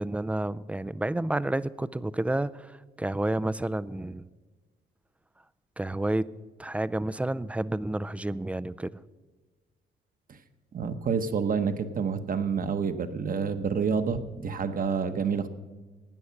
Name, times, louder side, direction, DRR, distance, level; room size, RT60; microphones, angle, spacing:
voice 1, 0.0-4.3 5.8-6.3 6.6-8.9, right 1 dB, 5° right, 17 dB, 0.4 m, -30 dB
voice 2, 10.7-15.5, right 6 dB, 45° right, 9 dB, 1.1 m, -28 dB
16.0 x 9.8 x 5.8 m, 1.3 s
cardioid pair, 90°, 20 cm